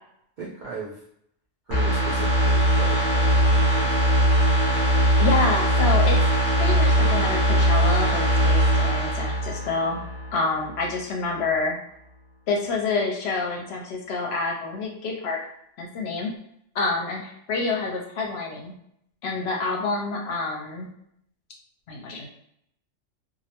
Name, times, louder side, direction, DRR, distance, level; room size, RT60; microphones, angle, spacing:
voice 1, 0.4-1.0 1.7-4.2, right 3 dB, 65° right, -6 dB, 0.5 m, -38 dB
sound 1, 1.7-10.4 10.7-10.8, right 1 dB, 30° left, 0.4 m, -20 dB
voice 2, 5.2-6.2 6.6-10.0 10.3-11.8 12.5-15.4 15.8-16.3 16.7-18.7 19.2-20.9 21.9-22.3, left 3 dB, 65° left, 0 dB, 0.8 m, -27 dB
2.4 x 2.1 x 2.8 m, 0.73 s
omnidirectional pair, 1.3 m